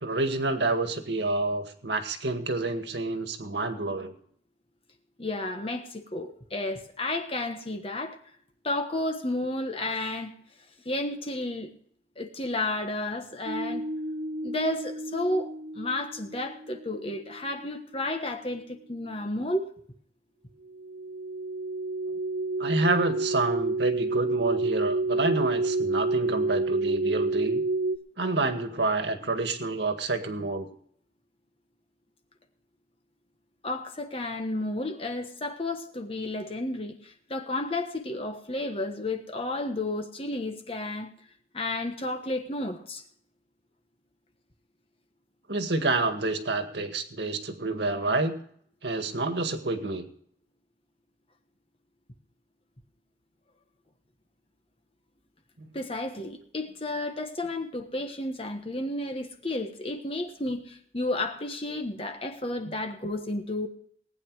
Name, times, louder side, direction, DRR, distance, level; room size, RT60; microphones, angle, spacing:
voice 1, 0.0-4.1 22.6-27.6 28.2-30.7 45.5-48.3 48.8-50.1, right 2 dB, 70° right, 7 dB, 1.9 m, -28 dB
voice 2, 5.2-8.2 8.6-10.3 10.8-11.7 12.2-13.8 14.4-19.7 33.6-41.1 41.5-43.0 55.7-63.7, left 2 dB, 30° left, 5 dB, 1.3 m, -32 dB
sound 1, 13.5-17.6 20.7-28.0, right 2 dB, 40° right, 0.7 m, -29 dB
19.0 x 9.7 x 4.8 m, 0.63 s
head